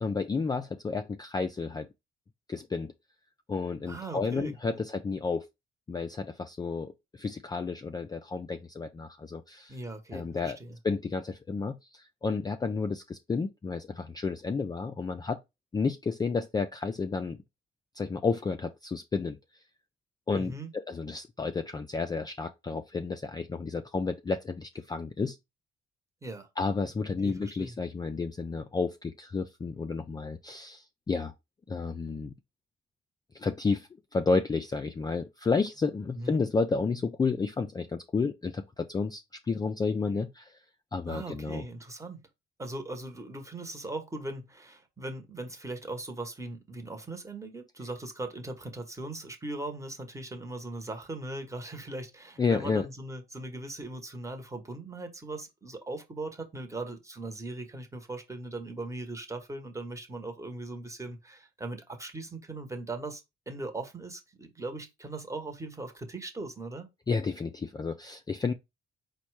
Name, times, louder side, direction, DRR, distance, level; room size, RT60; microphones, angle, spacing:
voice 1, 0.0-1.9 2.5-2.9 3.5-5.5 5.9-9.8 10.1-10.6 10.8-15.4 15.7-17.4 18.0-19.4 20.3-25.4 26.6-31.3 31.7-32.3 33.3-40.6 40.9-41.6 52.4-52.9 67.1-68.5, left 4 dB, 20° left, 0.3 m, -31 dB
voice 2, 3.9-4.8 9.7-10.8 20.4-20.7 26.2-26.5 27.2-27.7 36.1-36.4 41.1-42.2 42.6-66.9, right 2 dB, 15° right, 1.0 m, -39 dB
4.2 x 2.1 x 4.6 m
cardioid pair, 90°, 20 cm